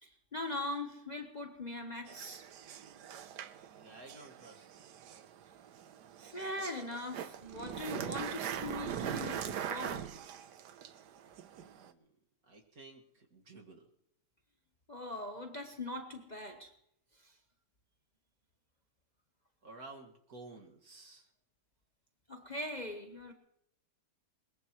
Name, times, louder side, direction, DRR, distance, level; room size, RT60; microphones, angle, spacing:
voice 1, 0.0-2.4 6.2-10.1 14.9-16.7 17.2-17.3 22.3-23.3, left 2 dB, 30° left, 1.0 m, -41 dB
sound 1, 2.1-11.9, right 9 dB, 80° right, 1.4 m, -42 dB
voice 2, 3.8-4.9 11.5-12.1 12.4-13.8 19.6-21.3, right 3 dB, 60° right, 2.4 m, -53 dB
22.0 x 20.5 x 3.1 m
omnidirectional pair, 1.8 m